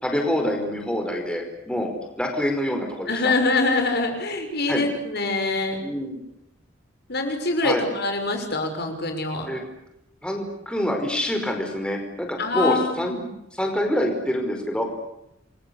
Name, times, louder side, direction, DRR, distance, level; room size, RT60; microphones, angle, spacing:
voice 1, 0.0-1.9 2.2-3.3 4.7-4.8 5.8-6.2 7.6-7.8 9.5-9.6 10.2-13.1 13.5-14.8, equal, 5° left, 3 dB, 5.1 m, -26 dB
voice 2, 3.1-5.8 7.1-9.5 12.4-13.2, left 3 dB, 60° left, 5 dB, 6.2 m, -24 dB
29.5 x 23.5 x 8.4 m, 0.85 s
head